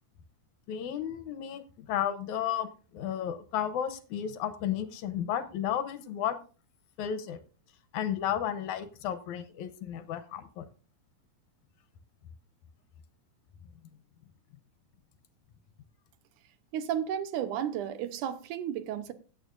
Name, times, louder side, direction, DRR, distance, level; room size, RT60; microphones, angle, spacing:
voice 1, 0.7-6.4 7.0-7.4 7.9-10.7, left 10 dB, 75° left, 2.1 m, -33 dB
voice 2, 16.7-19.1, right 9 dB, 80° right, 2.3 m, -33 dB
16.0 x 8.9 x 2.5 m
omnidirectional pair, 3.6 m